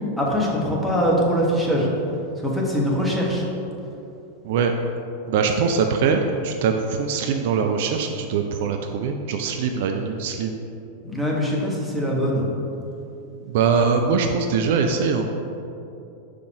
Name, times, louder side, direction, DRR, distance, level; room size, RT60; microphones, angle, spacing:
voice 1, 0.2-1.9 2.4-3.4 11.0-12.5, equal, 5° left, -4 dB, 1.3 m, -22 dB
voice 2, 5.3-10.6 13.4-15.2, right 5 dB, 50° right, 5 dB, 0.4 m, -22 dB
5.1 x 4.9 x 4.7 m, 2.7 s
figure-of-eight pair, 90°, 0 cm